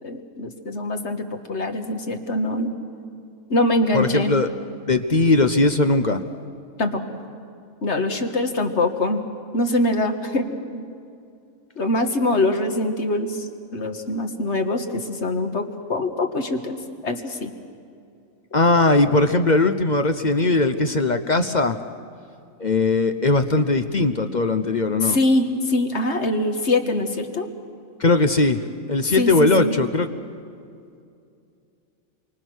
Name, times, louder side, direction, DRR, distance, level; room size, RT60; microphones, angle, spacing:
voice 1, 0.0-2.8 3.5-4.3 6.8-7.2 7.8-9.2 9.5-10.8 11.8-17.5 25.0-27.5 29.0-29.8, left 2 dB, 55° left, 6 dB, 1.8 m, -24 dB
voice 2, 3.9-4.5 4.9-6.2 18.5-21.8 22.6-25.2 28.0-28.6 28.9-30.1, left 2 dB, 40° left, 8 dB, 0.8 m, -19 dB
28.5 x 24.5 x 6.3 m, 2.5 s
omnidirectional pair, 1.4 m